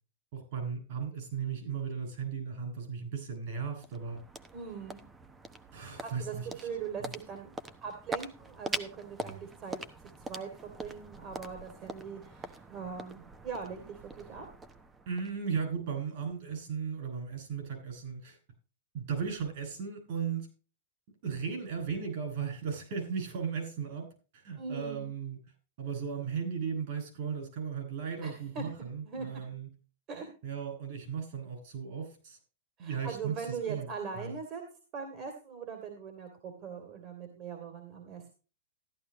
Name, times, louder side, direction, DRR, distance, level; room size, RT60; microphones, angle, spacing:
voice 1, 0.3-4.2 5.7-6.7 7.0-7.1 9.2-9.4 15.0-18.4 18.9-20.5 21.2-25.4 25.8-29.7 30.4-32.4 32.8-33.9 34.2-34.3, right 6 dB, 55° right, 4 dB, 6.8 m, -36 dB
sound 1, 3.4-15.8, right 2 dB, 15° right, 1.0 m, -44 dB
voice 2, 4.5-5.0 6.0-7.5 7.8-14.4 24.6-25.1 28.2-28.6 29.0-29.3 30.1-30.3 32.8-34.6 34.9-38.2, right 6 dB, 35° right, 4 dB, 2.7 m, -41 dB
14.0 x 11.0 x 3.0 m, 0.34 s
hypercardioid pair, 135°, 0 cm